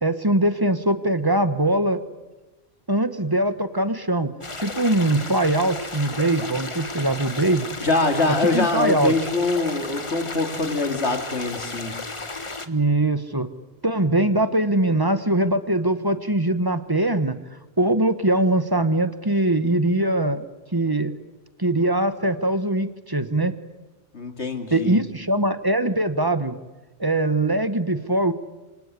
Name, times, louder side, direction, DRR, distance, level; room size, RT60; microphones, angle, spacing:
voice 1, 0.0-2.0 2.9-7.8 8.5-9.1 12.7-13.5 13.8-17.4 17.8-20.4 20.7-21.2 21.6-23.5 24.7-26.6 27.0-28.3, right 1 dB, 20° right, 11 dB, 1.3 m, -22 dB
sound 1, 4.4-12.7, left 3 dB, 30° left, 1.3 m, -34 dB
voice 2, 7.8-11.9 24.1-25.0, left 3 dB, 90° left, 5 dB, 2.9 m, -24 dB
27.0 x 25.0 x 8.4 m, 1.1 s
omnidirectional pair, 1.1 m